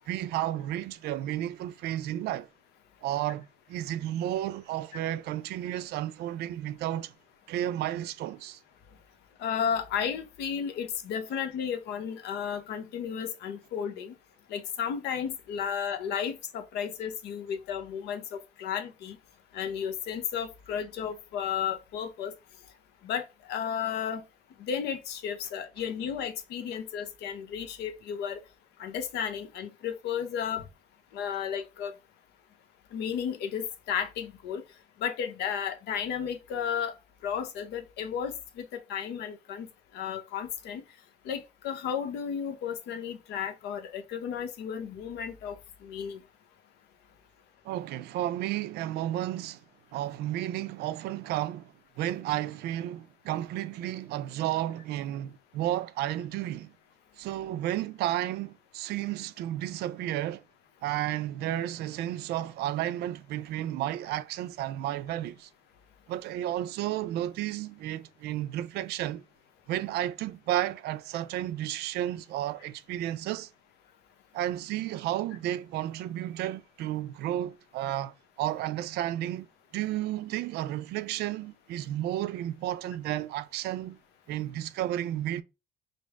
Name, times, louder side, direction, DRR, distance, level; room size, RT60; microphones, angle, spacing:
voice 1, 0.1-2.5 3.0-7.1 7.5-8.6 47.6-49.6 49.9-56.7 57.2-60.4 60.8-65.5 66.1-69.2 69.7-73.5 74.3-79.5 79.7-84.0 84.3-85.4, right 13 dB, 75° right, 0.4 m, -32 dB
voice 2, 9.4-14.1 14.5-19.2 19.5-22.3 23.0-24.2 24.6-28.4 28.8-30.6 31.1-31.9 32.9-34.6 35.0-36.9 37.2-39.7 39.9-40.8 41.3-45.6 45.8-46.2, left 8 dB, 80° left, 0.8 m, -33 dB
5.1 x 2.0 x 3.5 m
cardioid pair, 110°, 17 cm